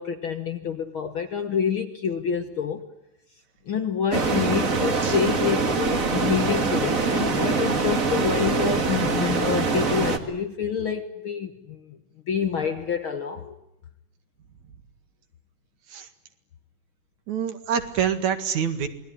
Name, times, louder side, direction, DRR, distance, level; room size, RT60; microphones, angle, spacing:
voice 1, 0.0-2.8 3.7-12.0 12.3-13.5, left 7 dB, 55° left, 1.6 m, -27 dB
sound 1, 4.1-10.2, right 4 dB, 35° right, 1.6 m, -24 dB
voice 2, 17.3-18.9, right 8 dB, 65° right, 3.2 m, -26 dB
28.0 x 21.0 x 9.8 m
omnidirectional pair, 3.7 m